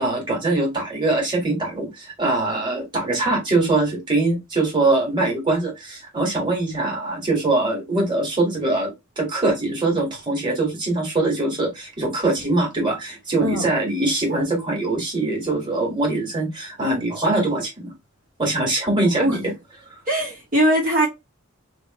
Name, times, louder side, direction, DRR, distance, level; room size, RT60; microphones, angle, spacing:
voice 1, 0.0-17.9 18.4-19.4 19.9-20.0, right 2 dB, 20° right, 1.9 m, -23 dB
voice 2, 19.1-19.5 20.1-21.1, right 1 dB, 40° right, 1.5 m, -21 dB
3.2 x 3.0 x 3.0 m
head